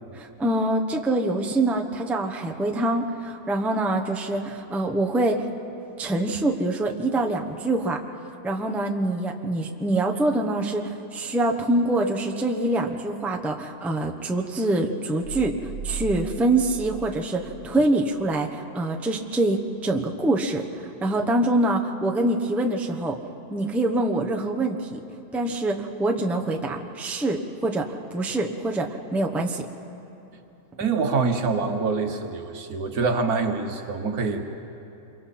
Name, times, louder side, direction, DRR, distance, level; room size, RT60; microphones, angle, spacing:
voice 1, 0.1-5.5 6.0-8.0 8.4-23.2 23.5-25.0 25.3-29.7, right 2 dB, ahead, 2 dB, 0.8 m, -25 dB
sound 1, 15.2-17.9, right 7 dB, 45° right, 0.3 m, -37 dB
voice 2, 30.8-34.4, right 4 dB, 70° right, 5 dB, 1.7 m, -25 dB
27.5 x 23.5 x 4.3 m, 2.9 s
omnidirectional pair, 1.6 m